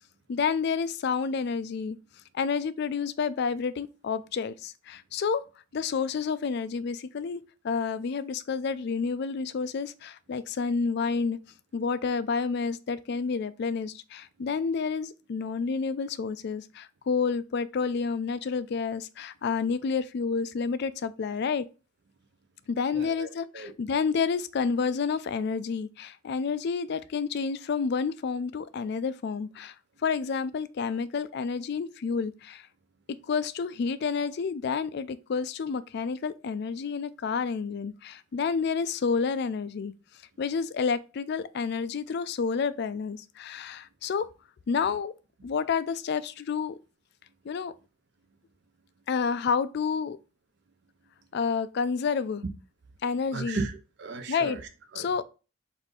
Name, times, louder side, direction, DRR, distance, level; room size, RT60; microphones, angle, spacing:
voice 1, 0.3-2.0 2.3-5.4 5.7-11.4 11.7-21.6 22.7-29.7 30.0-32.7 33.2-39.9 40.4-44.3 44.7-45.1 45.4-46.8 47.4-47.7 49.1-50.2 51.3-52.4 53.0-53.6 54.3-54.6 55.0-55.2, left 5 dB, 50° left, 0.3 m, -29 dB
voice 2, 22.9-23.3 23.5-23.7 53.3-55.1, right 3 dB, 55° right, 0.6 m, -36 dB
4.1 x 2.6 x 4.6 m
head